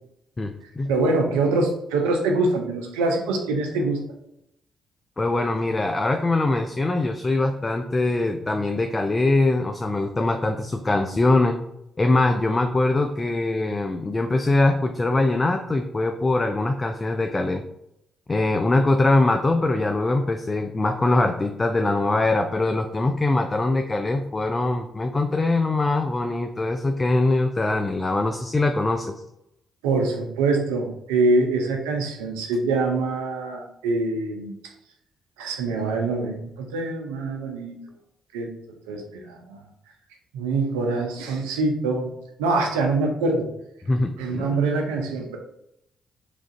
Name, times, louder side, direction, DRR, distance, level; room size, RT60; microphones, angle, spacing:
voice 1, 0.4-0.9 5.2-11.6 12.0-17.6 18.3-29.1 43.9-44.6, left 2 dB, 30° left, 5 dB, 0.3 m, -22 dB
voice 2, 0.9-4.0 29.8-34.5 35.4-37.8 38.3-38.5 38.9-39.7 40.3-42.1 42.4-43.5 44.2-45.4, right 3 dB, 85° right, 3 dB, 0.5 m, -24 dB
3.1 x 2.4 x 2.6 m, 0.80 s
hypercardioid pair, 45°, 0 cm